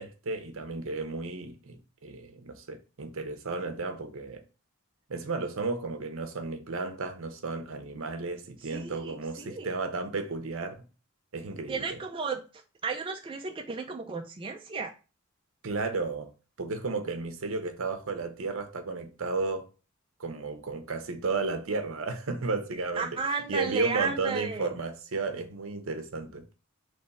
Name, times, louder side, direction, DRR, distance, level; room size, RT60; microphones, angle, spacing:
voice 1, 0.0-4.4 5.1-10.8 11.3-12.0 15.6-16.3 16.6-19.7 20.2-23.2 23.5-26.5, right 3 dB, 70° right, 0.7 m, -33 dB
voice 2, 8.7-9.7 11.7-12.4 12.8-14.9 23.0-24.7, right 4 dB, 25° right, 0.4 m, -33 dB
3.5 x 3.1 x 4.0 m
head